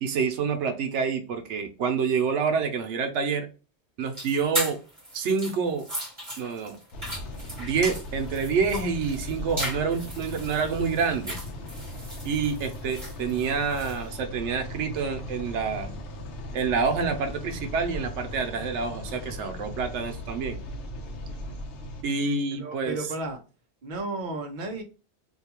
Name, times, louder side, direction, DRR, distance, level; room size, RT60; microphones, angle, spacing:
voice 1, 0.0-3.5 4.0-4.8 5.1-5.9 6.4-6.8 7.6-11.4 12.2-16.0 16.5-20.6 22.0-23.0, right 5 dB, 90° right, 0.9 m, -27 dB
sound 1, 4.1-14.0, equal, 25° right, 1.2 m, -37 dB
sound 2, 6.9-22.0, left 1 dB, 80° left, 0.9 m, -38 dB
voice 2, 22.6-23.4 23.8-24.8, right 2 dB, 50° right, 0.7 m, -33 dB
2.7 x 2.3 x 2.8 m
omnidirectional pair, 1.2 m